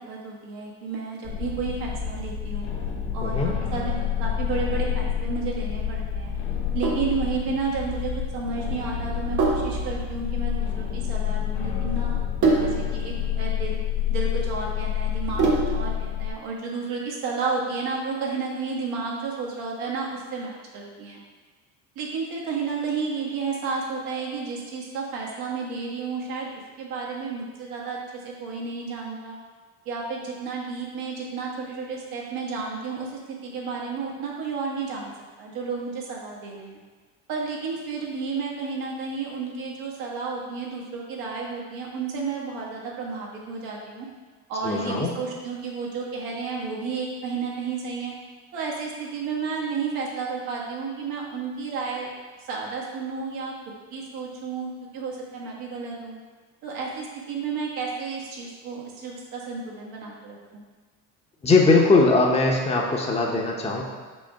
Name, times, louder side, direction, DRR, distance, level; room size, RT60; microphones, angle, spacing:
voice 1, 0.0-2.7 3.1-6.3 6.7-12.2 12.6-13.8 14.1-21.2 21.9-29.4 29.8-35.1 35.4-36.8 37.3-44.1 44.5-48.1 48.5-52.1 52.4-53.5 53.9-56.2 56.6-60.6, right 5 dB, 75° right, -2 dB, 1.5 m, -32 dB
sound 1, 1.2-16.3, left 9 dB, 85° left, 1.1 m, -28 dB
voice 2, 3.2-3.5 44.6-45.1 61.4-63.8, left 3 dB, 15° left, -1 dB, 0.9 m, -20 dB
Sink (filling or washing), 6.5-16.0, right 4 dB, 55° right, 1.4 m, -28 dB
5.4 x 3.3 x 5.6 m, 1.5 s
supercardioid pair, 95°, 36 cm